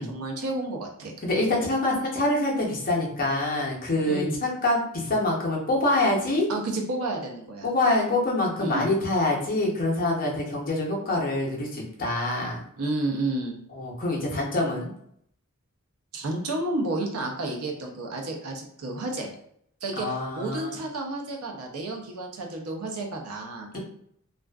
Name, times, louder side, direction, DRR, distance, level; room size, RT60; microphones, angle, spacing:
voice 1, 0.0-1.1 4.0-4.4 6.5-7.7 8.6-8.9 12.8-13.6 16.1-19.3 19.8-23.8, right 2 dB, 80° right, 1 dB, 0.6 m, -31 dB
voice 2, 1.2-6.5 7.6-12.6 13.7-14.9 20.0-20.8 23.7-23.8, left 2 dB, 40° left, -2 dB, 0.7 m, -25 dB
2.4 x 2.3 x 2.3 m, 0.68 s
head